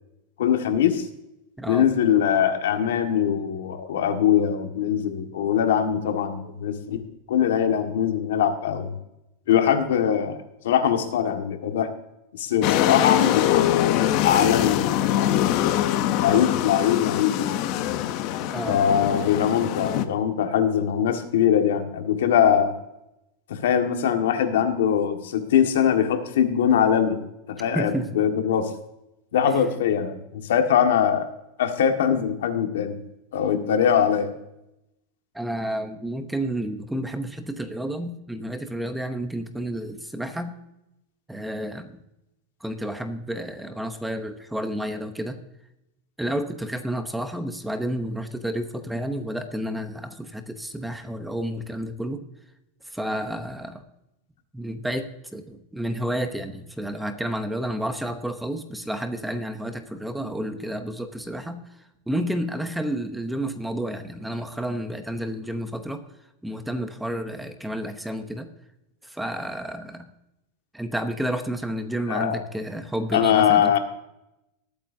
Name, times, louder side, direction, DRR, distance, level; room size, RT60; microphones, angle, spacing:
voice 1, 0.4-1.0 1.7-7.0 7.3-8.9 9.5-10.4 10.6-11.9 12.3-15.5 16.2-17.6 18.7-22.7 23.5-27.2 27.6-28.7 29.3-31.3 31.6-33.0 33.3-34.3 72.1-72.4 73.1-73.8, left 8 dB, 90° left, 5 dB, 1.7 m, -22 dB
sound 1, 12.6-20.0, left 12 dB, 45° left, 0.8 m, -23 dB
voice 2, 27.7-28.1 29.5-29.6 35.3-40.5 41.3-42.0 42.6-45.4 46.2-52.2 52.9-53.8 54.5-61.6 62.1-66.0 66.4-68.5 69.0-70.1 70.7-73.8, right 1 dB, 5° right, 8 dB, 0.8 m, -30 dB
20.0 x 8.9 x 2.7 m, 0.88 s
supercardioid pair, 160°, 0 cm